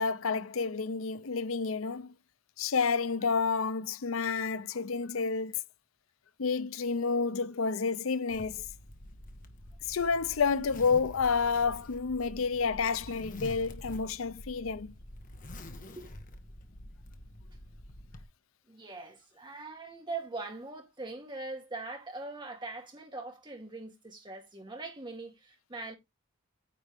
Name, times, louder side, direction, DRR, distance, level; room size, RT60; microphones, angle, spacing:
voice 1, 0.0-2.1 2.6-5.6 6.4-8.6 9.9-14.9, left 5 dB, 85° left, 0.6 m, -30 dB
Zipper (clothing), 8.3-18.2, left 1 dB, 40° left, 1.2 m, -47 dB
voice 2, 18.7-26.0, right 3 dB, 25° right, 2.1 m, -41 dB
9.4 x 5.3 x 3.4 m
head